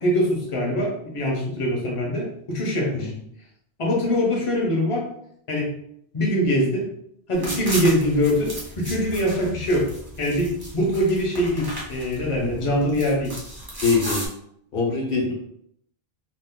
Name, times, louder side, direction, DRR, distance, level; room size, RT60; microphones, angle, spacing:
voice 1, 0.0-3.1 3.8-5.1 5.5-5.7 6.1-6.9 7.3-9.9 10.2-13.3, equal, 35° left, -2 dB, 0.8 m, -23 dB
sound 1, 7.3-14.3, equal, 25° right, 0.8 m, -35 dB
voice 2, 13.8-14.3 14.7-15.3, left 4 dB, 65° left, -2 dB, 1.1 m, -23 dB
2.6 x 2.4 x 3.6 m, 0.72 s
omnidirectional pair, 1.1 m